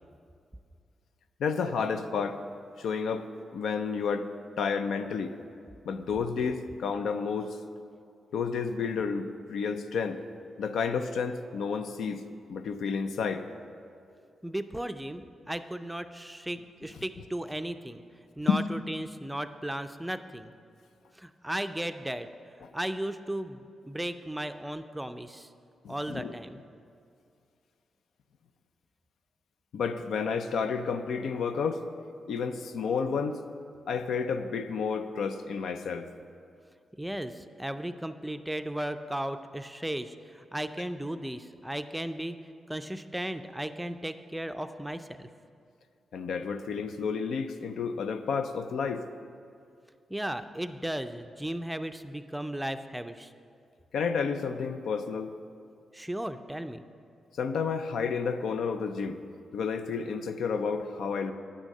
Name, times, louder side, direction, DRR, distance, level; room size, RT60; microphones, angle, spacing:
voice 1, 1.4-2.4 2.8-3.3 3.5-4.3 4.6-5.3 5.9-7.6 8.3-10.2 10.6-12.2 12.5-13.5 18.5-18.6 25.8-26.3 29.7-31.8 32.3-33.4 33.9-36.1 46.1-49.0 53.9-55.3 57.4-59.2 59.5-61.3, left 5 dB, 80° left, 9 dB, 0.5 m, -30 dB
voice 2, 14.4-18.0 18.4-20.5 21.1-22.3 22.7-25.5 25.9-26.6 37.0-42.4 42.7-45.3 50.1-53.3 55.9-56.8, right 1 dB, 5° right, 9 dB, 0.4 m, -35 dB
9.5 x 6.3 x 6.5 m, 2.4 s
cardioid pair, 80°, 0 cm